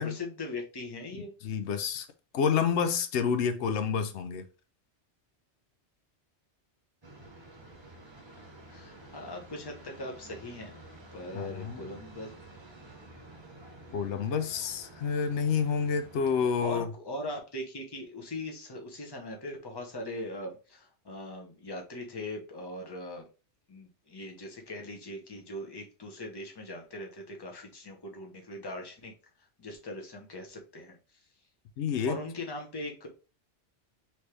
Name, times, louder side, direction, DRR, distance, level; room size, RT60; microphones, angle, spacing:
voice 1, 0.0-1.3 8.3-10.8 11.1-12.3 16.6-23.3 23.7-29.1 29.6-31.0 32.0-33.1, left 1 dB, 25° left, 0.9 m, -40 dB
voice 2, 1.2-2.1 2.3-4.4 11.3-11.8 13.9-16.9 31.8-32.2, left 6 dB, 85° left, 0.9 m, -29 dB
sound 1, 7.0-16.5, right 2 dB, 25° right, 0.9 m, -51 dB
4.3 x 3.3 x 3.2 m
omnidirectional pair, 1.1 m